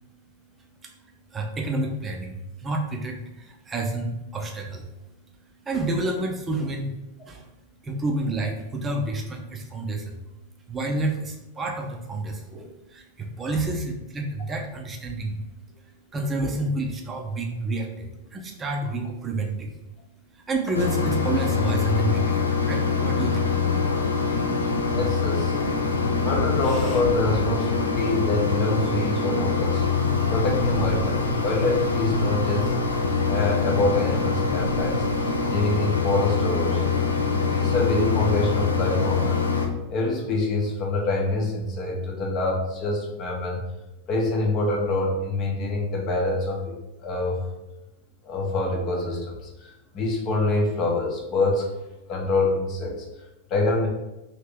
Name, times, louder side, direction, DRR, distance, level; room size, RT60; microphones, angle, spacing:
voice 1, 1.3-4.9 5.6-6.9 7.3-7.5 7.8-10.2 10.7-15.4 16.1-19.8 20.3-23.5, right 2 dB, 20° right, 1 dB, 0.6 m, -29 dB
Mechanisms, 20.7-39.7, left 4 dB, 80° left, 0.4 m, -24 dB
voice 2, 24.9-25.6 26.2-29.8 30.3-32.7 33.3-35.0 35.5-36.9 37.5-39.4 39.9-43.6 44.1-47.4 48.2-51.7 52.1-53.9, left 2 dB, 35° left, -1 dB, 0.8 m, -26 dB
3.1 x 2.8 x 3.5 m, 0.96 s
figure-of-eight pair, 90°, 0 cm